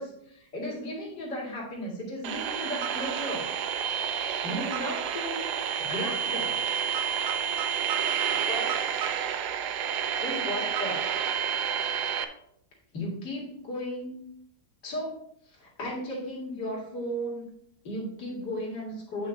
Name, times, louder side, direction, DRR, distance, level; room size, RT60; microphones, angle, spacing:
voice 1, 0.0-3.5 4.4-5.4 5.9-6.6 8.5-8.7 10.2-11.1 12.9-14.2 14.8-15.1 15.5-17.5 17.8-19.3, equal, 70° left, -4 dB, 2.7 m, -35 dB
sound 1, 2.2-12.3, right 8 dB, 70° right, 1.1 m, -29 dB
8.7 x 5.7 x 3.9 m, 0.73 s
omnidirectional pair, 1.9 m